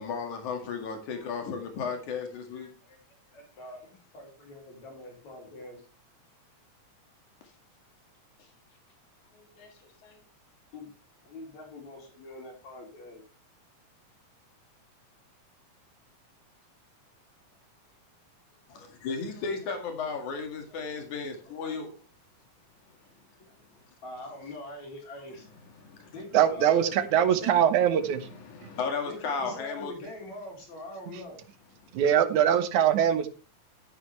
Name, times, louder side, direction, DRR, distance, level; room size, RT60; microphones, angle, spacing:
voice 1, 0.0-2.7 8.4-8.5 9.3-10.2 18.7-21.9 25.8-26.1 28.3-29.9, left 5 dB, 90° left, 4 dB, 3.5 m, -35 dB
voice 2, 2.5-3.0 3.3-5.9 10.7-10.9 11.2-13.2 18.7-18.9 19.4-19.5 20.3-20.4 21.4-21.8 24.0-25.5 26.1-27.6 29.0-31.4 32.5-32.6, left 2 dB, 70° left, 0 dB, 5.4 m, -44 dB
voice 3, 26.3-28.3 31.9-33.3, right 9 dB, 90° right, 10 dB, 2.6 m, -22 dB
12.5 x 9.5 x 3.3 m, 0.34 s
omnidirectional pair, 3.3 m